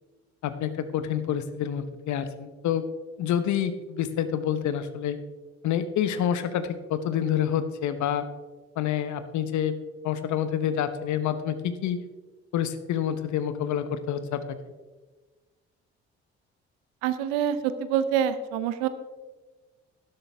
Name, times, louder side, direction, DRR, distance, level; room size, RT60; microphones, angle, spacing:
voice 1, 0.4-2.9 3.2-5.2 5.6-8.3 8.8-9.8 10.0-12.0 12.5-14.6, left 9 dB, 60° left, 12 dB, 1.1 m, -28 dB
voice 2, 17.0-18.9, right 9 dB, 75° right, 12 dB, 0.8 m, -26 dB
12.0 x 11.5 x 3.5 m, 1.3 s
hypercardioid pair, 50°, 32 cm